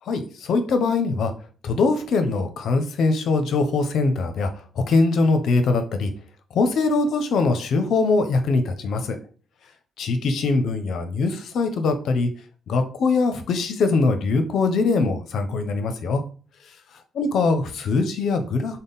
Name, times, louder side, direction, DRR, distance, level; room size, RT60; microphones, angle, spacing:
voice 1, 0.1-1.3 1.6-4.5 4.8-6.1 6.5-9.2 10.0-12.3 12.7-16.2 17.1-18.8, left 3 dB, 70° left, 7 dB, 0.6 m, -22 dB
3.5 x 2.1 x 4.0 m, 0.40 s
cardioid pair, 90°, 0 cm